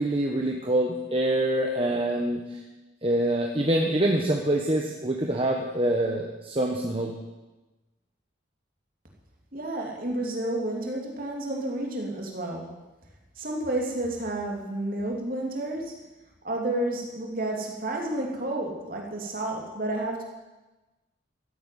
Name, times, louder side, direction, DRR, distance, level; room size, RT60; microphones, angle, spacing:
voice 1, 0.0-2.6 3.0-7.1, right 1 dB, 25° right, 1 dB, 1.2 m, -25 dB
voice 2, 9.5-12.7 13.4-15.9 16.4-20.2, right 1 dB, 45° right, 0 dB, 3.1 m, -30 dB
15.0 x 8.9 x 9.3 m, 1.1 s
head